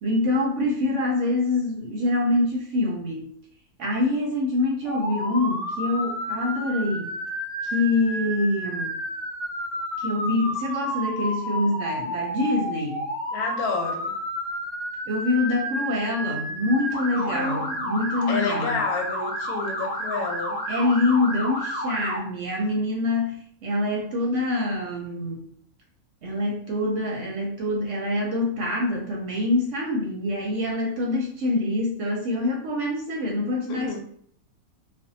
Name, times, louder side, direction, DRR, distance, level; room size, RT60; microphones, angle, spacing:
voice 1, 0.0-3.3 3.8-7.1 7.6-9.0 10.0-13.1 15.1-18.8 20.7-25.4 26.2-34.0, left 2 dB, 65° right, -1 dB, 0.8 m, -25 dB
Motor vehicle (road) / Siren, 4.9-22.2, equal, 10° right, 0.9 m, -31 dB
voice 2, 13.3-14.2 17.2-18.0 18.3-20.6 33.7-34.0, left 4 dB, 85° left, 2 dB, 1.1 m, -30 dB
2.5 x 2.2 x 2.6 m, 0.62 s
omnidirectional pair, 1.6 m